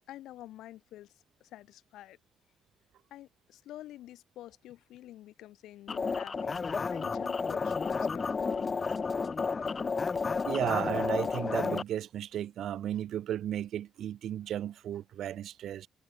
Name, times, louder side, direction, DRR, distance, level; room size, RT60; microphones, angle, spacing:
voice 1, 0.1-1.1 1.4-2.2 3.1-6.5 6.9-8.9, left 14 dB, 85° left, 3.2 m, -48 dB
sound 1, 5.9-11.8, left 4 dB, 35° left, 0.7 m, -31 dB
voice 2, 10.5-15.9, right 11 dB, 70° right, 1.6 m, -34 dB
cardioid pair, 90°, 0 cm